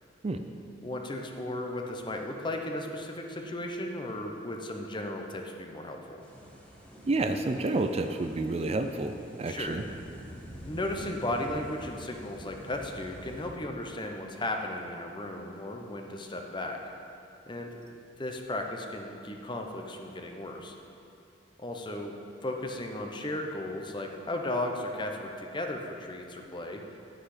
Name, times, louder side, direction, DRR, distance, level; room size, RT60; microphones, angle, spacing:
voice 1, 0.8-6.2 9.5-9.8 10.6-16.8 17.5-17.7 18.2-20.7 21.6-22.2 22.4-26.8, left 1 dB, 25° left, 3 dB, 0.8 m, -35 dB
sound 1, 6.2-13.5, equal, 5° left, 1.4 m, -47 dB
voice 2, 7.1-9.8, right 2 dB, 35° right, 7 dB, 0.4 m, -29 dB
10.5 x 8.6 x 5.0 m, 2.6 s
head